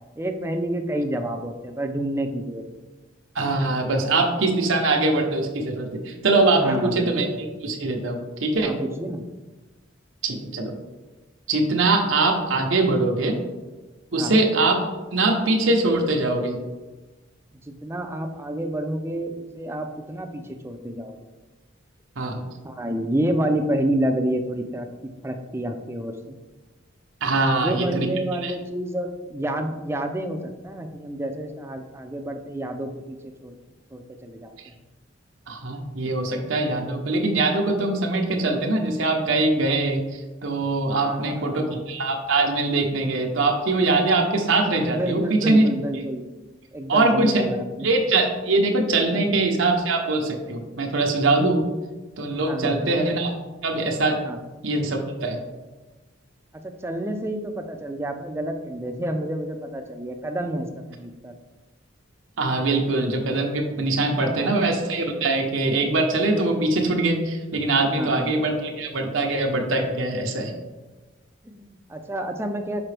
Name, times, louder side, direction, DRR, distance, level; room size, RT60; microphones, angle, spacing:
voice 1, 0.2-2.7 6.5-7.1 8.6-9.2 14.1-14.4 17.7-21.2 22.6-24.9 25.2-26.4 27.4-33.2 33.4-33.6 33.9-34.7 41.1-41.8 44.9-46.3 46.7-47.9 49.1-49.2 52.4-53.0 54.2-54.4 56.6-61.3 64.0-64.5 67.9-68.4 71.4-72.8, right 1 dB, 15° right, 4 dB, 0.5 m, -29 dB
voice 2, 3.3-8.7 10.2-10.7 11.5-13.3 14.1-14.8 15.1-16.6 22.2-22.4 27.2-28.1 28.4-28.5 35.5-45.7 45.9-46.1 46.9-47.5 47.8-51.6 52.2-53.3 53.6-54.2 54.6-55.4 62.4-70.5, right 2 dB, 85° right, 1 dB, 0.9 m, -22 dB
6.0 x 4.7 x 3.3 m, 1.2 s
head